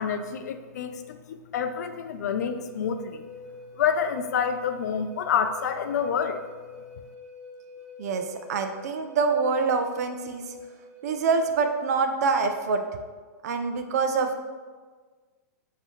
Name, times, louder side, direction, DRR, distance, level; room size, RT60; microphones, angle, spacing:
voice 1, 0.0-3.2 3.7-6.4, left 7 dB, 80° left, 8 dB, 0.4 m, -28 dB
Wind instrument woodwind instrument, 2.4-11.6, left 2 dB, 45° right, 1.3 m, -46 dB
voice 2, 8.0-10.6 11.0-12.8 13.4-14.4, right 4 dB, 70° right, 6 dB, 0.4 m, -25 dB
5.4 x 2.7 x 3.1 m, 1.4 s
hypercardioid pair, 140°, 9 cm